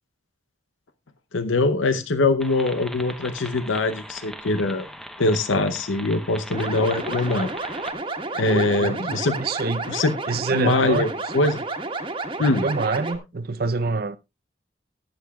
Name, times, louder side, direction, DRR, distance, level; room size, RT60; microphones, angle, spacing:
voice 1, 1.3-4.9 5.2-7.5 8.3-9.4 9.9-10.1 10.5-11.1 11.3-11.6 12.4-12.6, left 2 dB, 85° left, 0.8 m, -22 dB
sound 1, 2.4-7.9, equal, ahead, 0.9 m, -39 dB
sound 2, 6.5-13.2, right 3 dB, 25° right, 1.4 m, -31 dB
voice 2, 8.5-9.9 10.3-11.3 12.6-14.2, right 3 dB, 50° right, 0.6 m, -27 dB
20.0 x 7.9 x 2.3 m
head